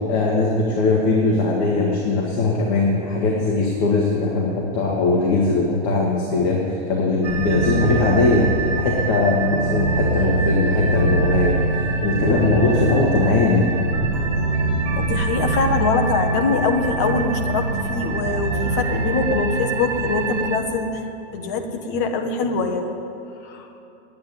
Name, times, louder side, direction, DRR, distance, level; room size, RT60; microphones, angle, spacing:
voice 1, 0.1-11.6 12.0-13.6, left 3 dB, 30° left, -3 dB, 1.6 m, -20 dB
sound 1, 7.2-20.6, right 3 dB, 70° right, 2.5 m, -23 dB
voice 2, 14.9-21.0 21.3-22.9 23.4-23.7, left 4 dB, 15° left, 5 dB, 0.4 m, -23 dB
9.4 x 9.3 x 9.0 m, 2.9 s
hypercardioid pair, 165°, 35 cm